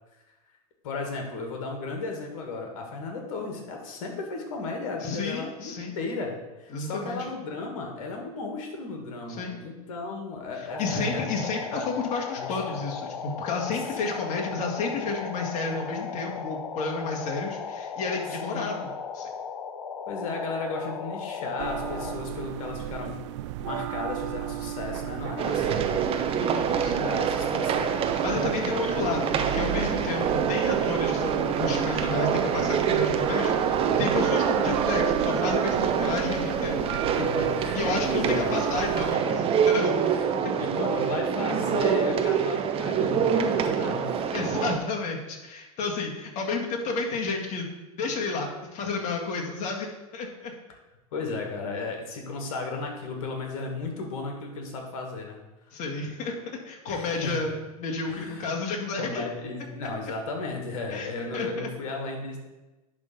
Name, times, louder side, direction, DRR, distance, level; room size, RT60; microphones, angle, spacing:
voice 1, 0.8-11.2 11.7-11.9 12.4-12.8 14.0-14.1 18.4-18.8 20.1-23.2 23.6-25.9 26.6-27.9 36.9-38.5 40.0-40.2 40.6-44.4 51.1-55.4 56.9-57.4 58.1-58.6 58.9-62.4, left 3 dB, 60° left, 2 dB, 2.0 m, -35 dB
voice 2, 5.0-6.0 6.7-7.3 9.3-9.6 10.6-19.3 26.3-27.1 28.0-36.8 37.7-39.9 44.3-47.7 48.0-50.5 55.7-59.2 60.9-61.7, left 3 dB, 40° left, 0 dB, 1.9 m, -31 dB
sound 1, 10.7-22.2, left 6 dB, 75° left, 0.6 m, -36 dB
sound 2, 21.6-39.2, right 14 dB, 50° right, 0.4 m, -34 dB
sound 3, 25.4-44.8, right 7 dB, 30° right, 0.8 m, -26 dB
11.0 x 3.7 x 5.5 m, 1.1 s
figure-of-eight pair, 90°, 19 cm